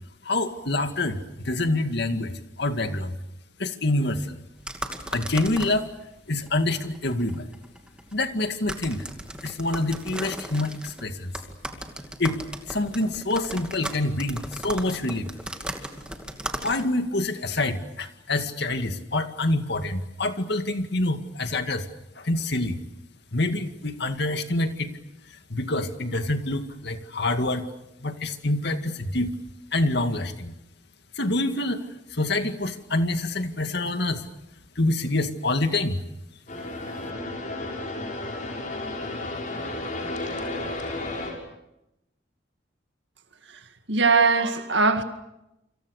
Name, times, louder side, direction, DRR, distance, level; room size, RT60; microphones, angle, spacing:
voice 1, 0.2-3.2 3.6-4.4 5.1-5.9 6.3-7.5 8.1-9.0 9.4-11.3 12.2-12.4 12.7-15.3 16.6-21.9 22.2-22.8 23.3-24.9 25.5-27.6 28.0-29.3 29.7-30.6 31.2-31.8 32.1-34.3 34.8-36.0, left 2 dB, 60° left, 2.2 m, -26 dB
sound 1, 4.6-17.0, right 1 dB, 5° right, 2.4 m, -38 dB
sound 2, 36.5-41.3, left 2 dB, 45° left, 6.4 m, -32 dB
voice 2, 43.9-45.0, right 4 dB, 70° right, 2.2 m, -20 dB
29.0 x 26.0 x 6.6 m
head